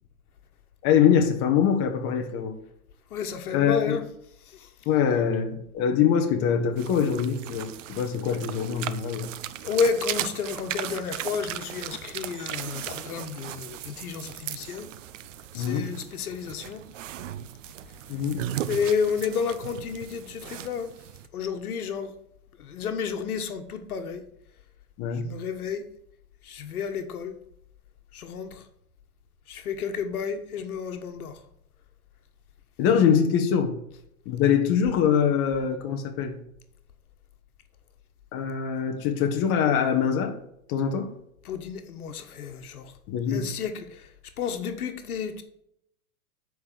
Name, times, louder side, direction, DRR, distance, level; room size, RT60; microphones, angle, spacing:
voice 1, 0.8-2.5 3.5-4.0 4.9-9.3 15.5-15.9 18.1-18.4 25.0-25.3 32.8-33.8 34.2-36.4 38.3-40.3 40.7-41.1 43.1-43.5, left 7 dB, 30° left, 1.3 m, -23 dB
voice 2, 3.1-4.1 4.5-4.7 9.6-14.9 15.5-16.8 18.7-20.9 21.3-22.1 22.6-24.2 25.1-25.8 26.4-27.3 28.1-28.6 29.5-31.4 41.4-42.9 43.3-44.1 44.4-45.4, left 6 dB, 80° left, 1.5 m, -31 dB
sound 1, 6.8-21.3, right 12 dB, 60° right, 0.8 m, -37 dB
7.8 x 5.2 x 7.3 m
hypercardioid pair, 145°, 43 cm